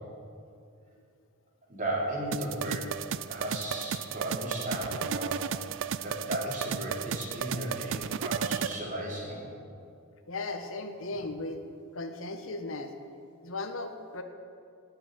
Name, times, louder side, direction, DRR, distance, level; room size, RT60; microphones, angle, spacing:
voice 1, 1.7-2.9 3.3-5.5 6.0-9.4, right 1 dB, 35° right, -3 dB, 3.5 m, -35 dB
sound 1, 2.3-8.8, right 7 dB, 60° right, 0.4 m, -34 dB
voice 2, 10.3-11.6 11.9-12.9 13.4-14.2, left 2 dB, 65° left, 6 dB, 1.2 m, -36 dB
19.0 x 6.9 x 9.2 m, 2.4 s
head